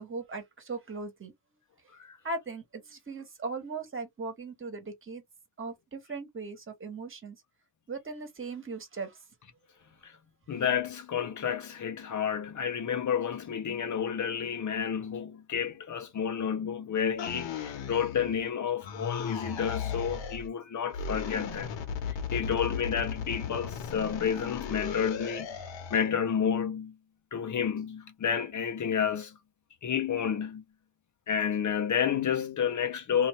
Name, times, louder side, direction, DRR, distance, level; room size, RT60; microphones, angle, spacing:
voice 1, 0.0-1.3 2.2-5.2 5.6-7.4 7.9-9.2, right 3 dB, 25° right, 1.3 m, -38 dB
voice 2, 10.5-21.8 22.1-25.5 25.9-27.0 27.3-29.4 29.8-30.6 31.3-33.3, left 7 dB, 40° left, 0.7 m, -30 dB
sound 1, 17.2-18.5 18.8-20.5 20.9-26.1, left 6 dB, 70° left, 1.2 m, -36 dB
2.8 x 2.6 x 3.1 m
cardioid pair, 115°, 46 cm